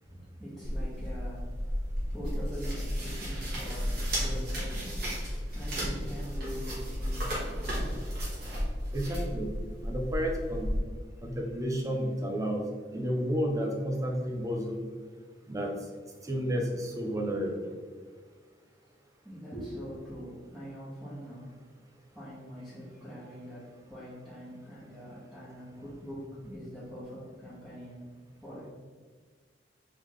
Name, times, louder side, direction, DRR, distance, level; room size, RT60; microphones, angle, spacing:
voice 1, 0.0-1.4 2.1-5.0 5.5-8.0 19.2-21.5 22.1-28.0 28.4-28.7, equal, 5° right, -12 dB, 1.0 m, -43 dB
sound 1, 0.6-10.8, equal, 60° right, 1.4 m, -33 dB
voice 2, 8.9-9.5 9.8-10.7 11.2-12.6 12.9-14.8 15.5-15.7 16.2-17.7, equal, 20° right, 1 dB, 0.6 m, -31 dB
3.8 x 3.4 x 3.1 m, 1.5 s
head